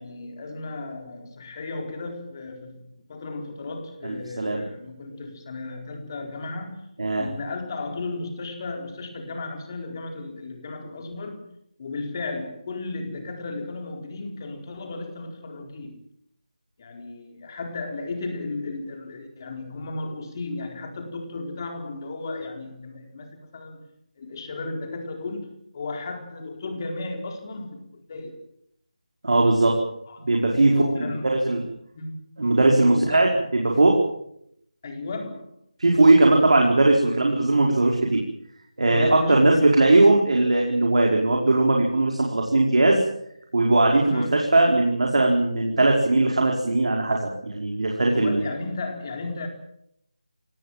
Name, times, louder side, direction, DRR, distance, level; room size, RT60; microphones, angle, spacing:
voice 1, 0.0-6.8 7.2-11.4 11.8-16.0 16.8-23.8 24.2-28.4 30.1-31.4 31.9-32.2 32.9-33.3 34.8-35.5 38.9-40.1 44.1-44.5 48.1-49.5, left 3 dB, 30° left, 4 dB, 4.3 m, -34 dB
voice 2, 4.0-4.6 7.0-7.3 29.2-29.8 30.2-30.7 31.0-31.2 31.4-31.6 32.4-34.0 35.8-38.2 38.8-43.0 43.5-48.5, right 2 dB, 65° right, 0 dB, 5.0 m, -19 dB
27.0 x 19.5 x 7.5 m, 0.74 s
figure-of-eight pair, 165°, 4 cm